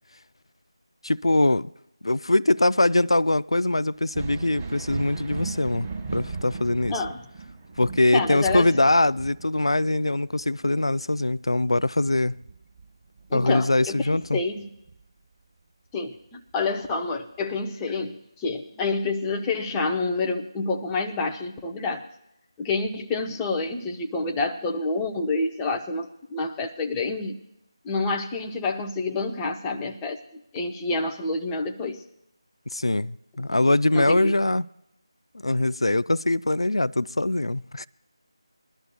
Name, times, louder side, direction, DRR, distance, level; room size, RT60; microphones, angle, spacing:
voice 1, 1.0-1.7 2.0-7.0 7.8-12.3 13.3-14.4 32.7-34.7 35.4-37.9, left 2 dB, 80° left, 0.4 m, -22 dB
Thunder, 4.0-13.3 13.7-14.9 16.5-16.6 17.4-17.5, right 4 dB, 20° right, 4.5 m, -37 dB
voice 2, 6.9-7.2 8.1-8.9 13.3-14.0 14.3-14.7 15.9-22.1 22.6-27.4 27.8-32.0 33.9-34.3, left 3 dB, 10° left, 0.7 m, -28 dB
22.5 x 12.0 x 2.3 m
figure-of-eight pair, 165°, 3 cm